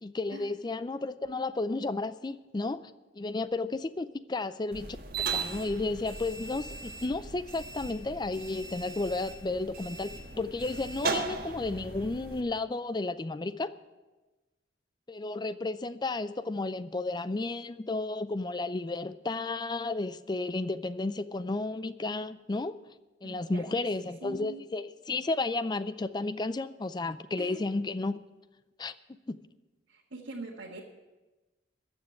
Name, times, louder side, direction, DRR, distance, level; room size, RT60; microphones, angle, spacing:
voice 1, 0.0-13.7 15.1-22.7 23.2-28.2 28.8-28.9 29.3-29.4, left 2 dB, 25° left, 14 dB, 0.4 m, -33 dB
sound 1, 4.7-12.4, right 4 dB, 50° right, 1.4 m, -37 dB
voice 2, 23.2-24.6 27.4-27.6 29.9-30.8, right 2 dB, 75° right, -3 dB, 1.5 m, -43 dB
14.0 x 7.3 x 8.4 m, 1.1 s
head